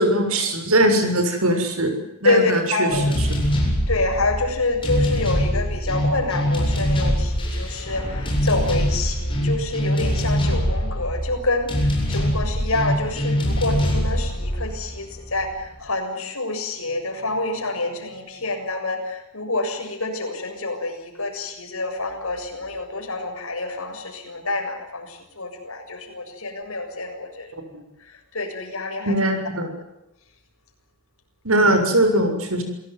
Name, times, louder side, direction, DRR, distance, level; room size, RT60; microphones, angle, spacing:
voice 1, 0.0-1.9 2.2-3.4 27.6-27.8 29.1-29.7 31.4-32.6, right 1 dB, 75° right, 6 dB, 7.0 m, -21 dB
voice 2, 2.2-3.1 3.9-27.6 28.1-29.1, left 2 dB, 70° left, 4 dB, 7.2 m, -27 dB
sound 1, 2.9-15.6, equal, 25° left, 8.0 m, -23 dB
28.0 x 18.0 x 9.5 m, 0.86 s
head